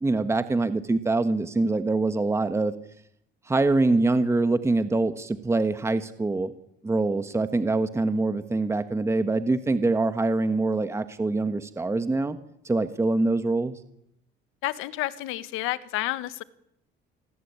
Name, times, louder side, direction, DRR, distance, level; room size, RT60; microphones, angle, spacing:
voice 1, 0.0-2.7 3.5-6.5 6.8-12.4 12.6-13.8, right 3 dB, 15° right, 10 dB, 1.4 m, -24 dB
voice 2, 14.6-16.4, left 16 dB, 90° left, 14 dB, 1.6 m, -30 dB
28.5 x 20.0 x 8.9 m, 0.77 s
cardioid pair, 125°, 20 cm